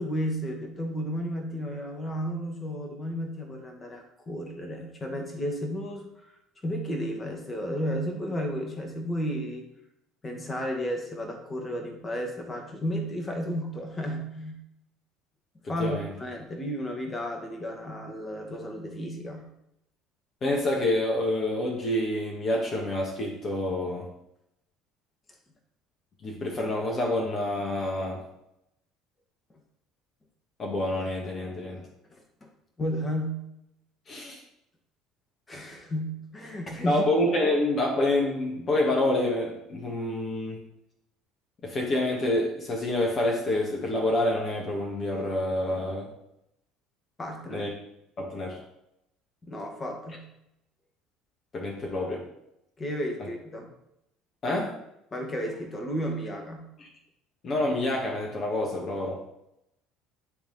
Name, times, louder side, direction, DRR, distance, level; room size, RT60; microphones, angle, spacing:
voice 1, 0.0-6.1 6.6-9.7 10.2-14.6 15.7-19.5 32.1-32.5 32.8-33.5 35.5-37.0 47.2-47.7 49.4-50.3 52.8-53.7 55.1-56.7, equal, 25° left, 2 dB, 1.7 m, -33 dB
voice 2, 15.8-16.1 20.4-24.1 26.2-28.3 30.6-31.8 34.1-34.4 36.9-40.6 41.6-46.1 47.5-47.7 48.2-48.6 51.5-52.2 54.4-54.7 56.8-56.9 57.4-59.2, left 1 dB, 40° left, -1 dB, 1.5 m, -27 dB
10.0 x 3.5 x 4.0 m, 0.81 s
hypercardioid pair, 65°, 0 cm